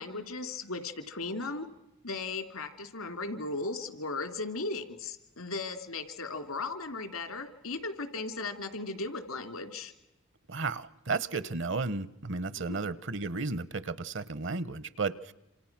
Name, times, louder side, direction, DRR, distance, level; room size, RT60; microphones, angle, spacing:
voice 1, 0.0-1.7 2.0-9.9 12.7-12.8, left 3 dB, 80° left, 2.7 m, -36 dB
voice 2, 10.5-15.3, right 4 dB, 60° right, 0.9 m, -33 dB
27.5 x 27.0 x 6.0 m
head